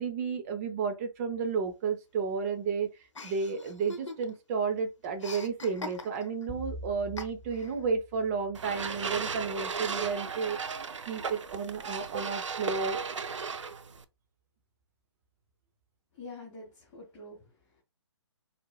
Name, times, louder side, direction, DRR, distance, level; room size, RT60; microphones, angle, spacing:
voice 1, 0.0-2.9 3.2-10.6 11.1-13.0, right 5 dB, 30° right, 0.7 m, -32 dB
Chuckle chortle, 3.1-4.5 4.8-6.4 7.2-7.7, left 3 dB, 75° left, 0.8 m, -42 dB
sound 1, 6.5-9.1, equal, 10° right, 1.2 m, -45 dB
sound 2, 8.5-14.0, right 5 dB, 80° right, 0.5 m, -36 dB
voice 2, 16.1-17.8, left 2 dB, 20° left, 1.5 m, -47 dB
4.6 x 2.5 x 2.2 m
figure-of-eight pair, 135°, 15 cm